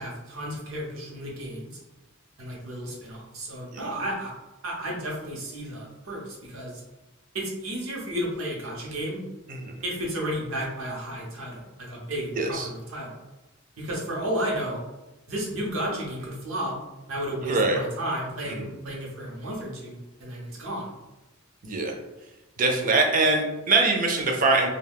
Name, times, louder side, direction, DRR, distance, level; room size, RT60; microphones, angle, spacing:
voice 1, 0.0-1.7 2.4-4.3 4.6-6.7 7.3-9.2 9.8-13.1 13.8-14.8 15.3-16.8 17.1-20.9, right 1 dB, 90° right, -3 dB, 0.9 m, -32 dB
voice 2, 12.4-12.7 17.5-17.8 18.5-18.6 21.6-21.9 22.6-24.7, right 3 dB, 40° right, 2 dB, 0.5 m, -23 dB
2.3 x 2.3 x 3.4 m, 1.1 s
head